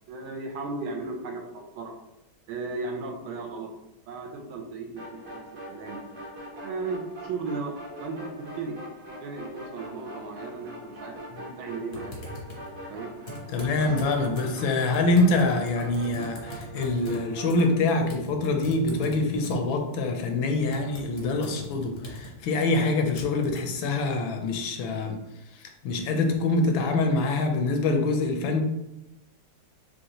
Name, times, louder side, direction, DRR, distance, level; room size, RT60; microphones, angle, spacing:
voice 1, 0.1-1.9 2.5-3.7 4.1-5.4 5.7-6.0 6.5-7.7 8.0-8.8 9.2-12.2 12.9-13.1 13.8-13.9, right 3 dB, 80° right, 3 dB, 1.5 m, -35 dB
sound 1, 5.0-17.8, right 1 dB, 45° right, 1.4 m, -42 dB
Typing, 11.9-23.7, equal, 45° left, 0.8 m, -42 dB
voice 2, 13.5-25.2 25.5-28.6, left 2 dB, 75° left, 4 dB, 1.4 m, -25 dB
6.4 x 2.4 x 2.9 m, 0.92 s
omnidirectional pair, 2.3 m